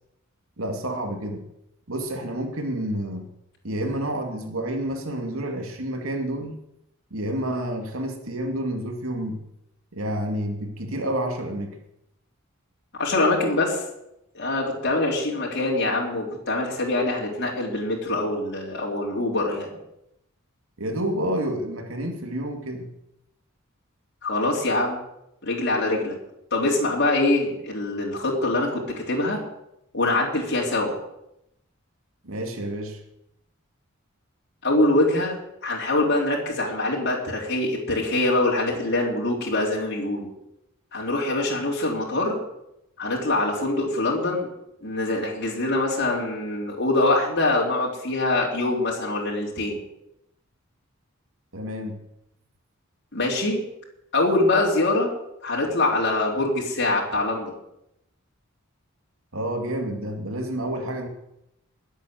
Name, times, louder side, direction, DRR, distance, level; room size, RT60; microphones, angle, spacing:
voice 1, 0.6-1.5 1.9-3.3 3.6-6.6 7.1-9.4 9.9-11.8 20.8-22.9 32.2-33.0 51.5-52.0 59.3-61.1, right 1 dB, 80° right, 3 dB, 2.5 m, -29 dB
voice 2, 13.0-13.8 14.3-19.7 24.2-25.0 25.4-26.2 26.5-28.8 29.1-29.4 29.9-31.0 34.6-35.4 35.6-40.3 40.9-42.3 43.0-44.5 44.8-49.8 53.1-53.6 54.1-55.1 55.4-57.5, left 2 dB, 55° left, -3 dB, 3.9 m, -24 dB
20.5 x 8.2 x 7.8 m, 0.84 s
head